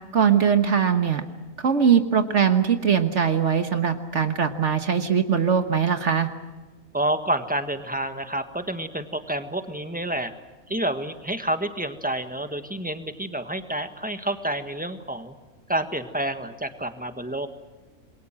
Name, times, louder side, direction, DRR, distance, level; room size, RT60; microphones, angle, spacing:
voice 1, 0.1-1.2 1.6-6.3, right 7 dB, 60° right, 8 dB, 1.5 m, -21 dB
voice 2, 6.9-10.3 10.7-15.3 15.7-17.5, right 1 dB, 5° right, 8 dB, 1.5 m, -29 dB
27.5 x 22.0 x 7.6 m, 1.2 s
omnidirectional pair, 1.4 m